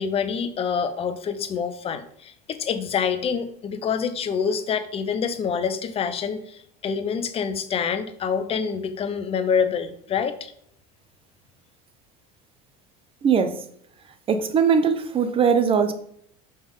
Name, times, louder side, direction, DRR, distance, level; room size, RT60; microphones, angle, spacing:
voice 1, 0.0-10.5, left 6 dB, 30° left, 10 dB, 0.7 m, -26 dB
voice 2, 13.2-13.6 14.3-15.9, right 6 dB, 30° right, 9 dB, 0.7 m, -20 dB
5.4 x 3.4 x 5.4 m, 0.68 s
supercardioid pair, 115°, 19 cm